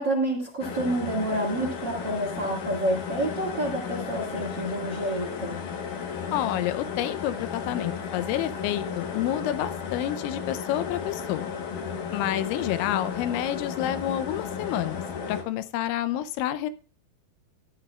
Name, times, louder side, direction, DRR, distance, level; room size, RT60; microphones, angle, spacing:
voice 1, 0.0-5.6, right 1 dB, 40° right, 1 dB, 1.6 m, -28 dB
sound 1, 0.6-15.4, left 6 dB, 70° left, 2.0 m, -34 dB
voice 2, 6.3-11.5 12.1-16.7, left 12 dB, 85° left, 13 dB, 3.1 m, -29 dB
14.0 x 10.5 x 2.4 m, 0.37 s
omnidirectional pair, 5.2 m